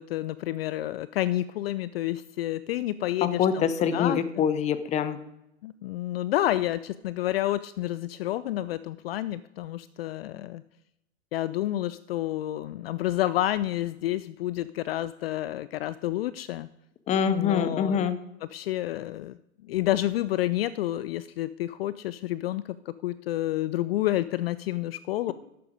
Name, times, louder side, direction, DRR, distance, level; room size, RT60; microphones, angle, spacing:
voice 1, 0.0-4.5 5.6-10.6 11.3-16.7 17.3-18.1 18.4-19.4 19.7-25.3, left 14 dB, 50° left, 16 dB, 0.5 m, -29 dB
voice 2, 3.2-5.2 17.1-18.1, left 7 dB, 20° left, 13 dB, 0.7 m, -25 dB
11.5 x 8.4 x 5.0 m, 0.86 s
hypercardioid pair, 115°, 38 cm